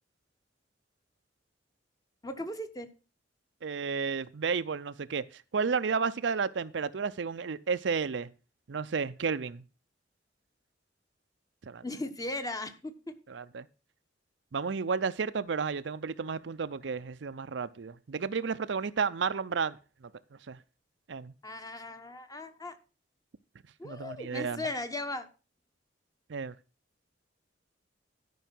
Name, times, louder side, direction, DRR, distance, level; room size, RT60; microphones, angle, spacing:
voice 1, 2.2-2.9 11.8-13.2 21.4-22.8 23.8-25.3, left 2 dB, 20° left, 1.1 m, -37 dB
voice 2, 3.6-5.2 5.5-8.3 8.7-9.6 11.7-11.8 13.3-13.7 14.5-19.8 20.5-20.6 21.1-21.3 23.8-24.6 26.3-26.5, right 5 dB, 70° right, 0.5 m, -32 dB
12.5 x 5.6 x 5.9 m
head